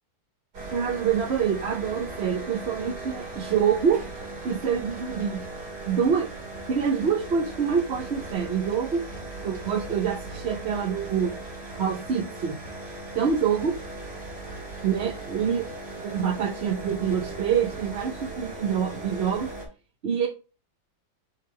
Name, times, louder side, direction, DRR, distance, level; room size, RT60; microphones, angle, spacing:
sound 1, 0.5-19.7, right 2 dB, 70° right, 3.3 m, -38 dB
voice 1, 0.7-4.0 4.4-5.4 5.9-6.3 6.7-9.0 9.4-11.3 11.7-12.6 13.1-13.7 14.8-15.7 16.0-19.5 20.0-20.3, right 7 dB, 50° right, 1 dB, 0.8 m, -26 dB
9.6 x 3.7 x 3.2 m, 0.34 s
omnidirectional pair, 1.9 m